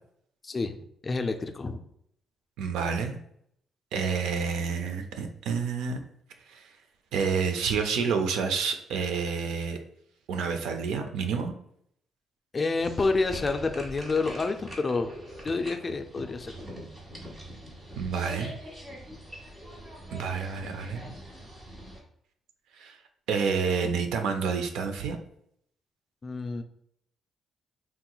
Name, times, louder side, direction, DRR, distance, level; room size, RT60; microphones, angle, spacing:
voice 1, 0.4-0.8 1.0-1.8 12.5-15.1 15.4-16.6 26.2-26.6, left 3 dB, 30° left, 7 dB, 0.4 m, -28 dB
voice 2, 2.6-3.2 3.9-6.0 6.5-6.7 7.1-9.8 10.3-11.5 18.0-18.5 20.1-21.1 22.8-23.0 23.3-25.2, right 5 dB, 85° right, 5 dB, 0.4 m, -29 dB
sound 1, 12.8-22.0, equal, 25° right, 1.4 m, -43 dB
3.5 x 2.9 x 2.3 m, 0.70 s
cardioid pair, 90°, 0 cm